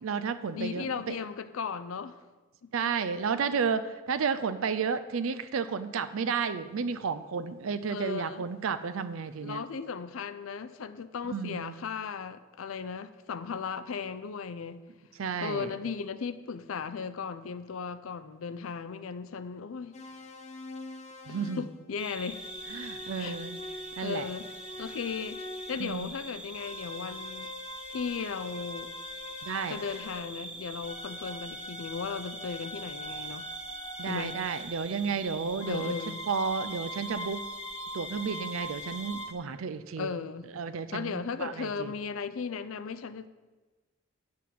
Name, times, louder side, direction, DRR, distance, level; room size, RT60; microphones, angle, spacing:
voice 1, 0.0-1.2 2.7-9.6 11.2-11.8 15.2-15.7 21.3-21.6 22.7-23.6 24.0-24.3 25.8-26.1 29.4-29.8 34.0-35.9 36.3-37.4 37.9-40.1 40.6-41.9, right 5 dB, 80° right, 0.5 m, -32 dB
voice 2, 0.5-2.2 7.9-8.5 9.4-14.8 15.4-20.2 21.3-22.4 23.1-23.4 24.0-24.5 24.8-25.4 25.7-27.5 27.9-28.9 29.7-33.5 34.1-34.4 35.7-36.2 40.0-40.5 40.9-43.3, left 5 dB, 75° left, 0.5 m, -36 dB
sound 1, 19.9-21.8 22.3-25.9 26.5-30.4 30.8-34.8 35.6-39.3, left 2 dB, 35° left, 0.9 m, -43 dB
sound 2, 22.0-39.3, right 2 dB, 5° right, 0.6 m, -43 dB
8.4 x 6.1 x 7.4 m
head